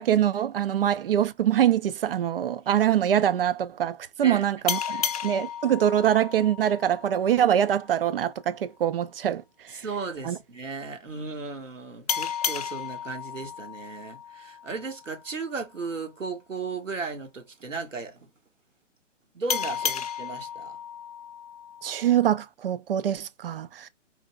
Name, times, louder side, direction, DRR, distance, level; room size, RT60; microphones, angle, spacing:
voice 1, 0.0-5.0 5.2-9.4 10.2-10.4 21.8-23.9, right 10 dB, 50° right, 0.6 m, -24 dB
sound 1, 4.7-7.9 12.1-15.3 19.5-22.4, left 8 dB, 30° left, 0.4 m, -33 dB
voice 2, 9.7-18.3 19.3-20.8, right 4 dB, 90° right, 1.5 m, -35 dB
4.1 x 4.0 x 2.3 m
figure-of-eight pair, 135°, 37 cm